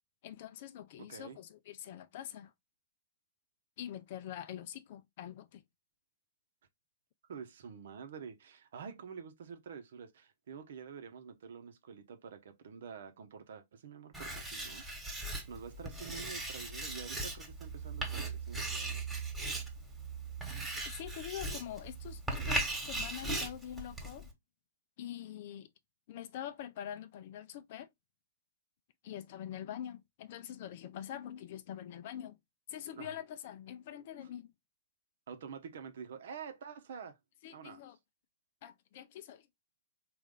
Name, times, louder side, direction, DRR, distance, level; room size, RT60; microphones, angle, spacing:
voice 1, 0.2-2.5 3.8-5.6 20.7-24.3 25.0-25.7 26.1-27.9 29.0-32.4 32.7-34.5 37.4-38.0 38.6-39.5, left 10 dB, 50° left, 0.5 m, -45 dB
voice 2, 1.0-1.4 7.3-14.8 15.2-19.0 33.0-33.2 35.3-37.2 37.5-37.8, right 6 dB, 65° right, 0.9 m, -48 dB
Writing, 14.1-24.3, right 2 dB, 5° right, 1.4 m, -38 dB
3.9 x 2.6 x 3.6 m
figure-of-eight pair, 110°, 0 cm